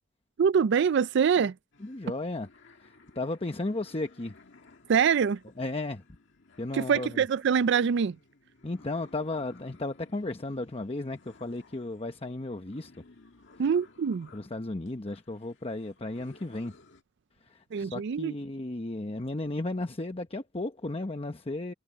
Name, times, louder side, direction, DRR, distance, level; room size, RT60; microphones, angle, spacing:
voice 1, 0.4-1.5 4.9-5.4 6.7-8.2 13.6-14.3 17.7-18.3, right 7 dB, 60° right, 0.4 m, -24 dB
sound 1, 1.7-17.0, left 3 dB, 65° left, 2.0 m, -58 dB
voice 2, 1.8-2.5 2.8-4.4 5.6-6.0 6.6-7.2 8.6-12.9 14.3-16.8 17.4-21.7, left 2 dB, 30° left, 1.0 m, -34 dB
head